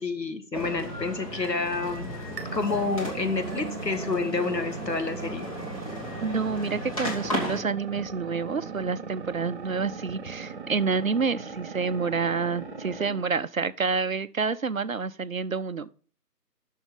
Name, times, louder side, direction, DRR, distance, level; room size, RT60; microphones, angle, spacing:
voice 1, 0.0-2.1 2.5-5.5, left 3 dB, 85° left, 1.9 m, -29 dB
sound 1, 0.5-7.6, equal, 20° left, 1.6 m, -35 dB
sound 2, 2.4-13.3, right 5 dB, 40° right, 1.4 m, -39 dB
voice 2, 6.2-15.9, right 5 dB, 60° right, 0.5 m, -28 dB
7.6 x 6.3 x 5.4 m
figure-of-eight pair, 155°, 49 cm